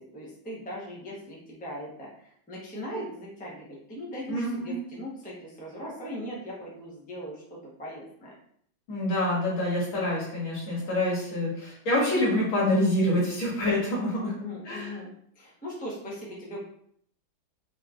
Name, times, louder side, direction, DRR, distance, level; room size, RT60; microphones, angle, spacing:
voice 1, 0.1-8.3 14.1-16.6, equal, 10° left, -5 dB, 0.4 m, -39 dB
voice 2, 4.3-4.8 8.9-14.3 14.7-14.9, left 1 dB, 90° left, -6 dB, 2.4 m, -26 dB
4.4 x 2.9 x 2.4 m, 0.66 s
omnidirectional pair, 2.1 m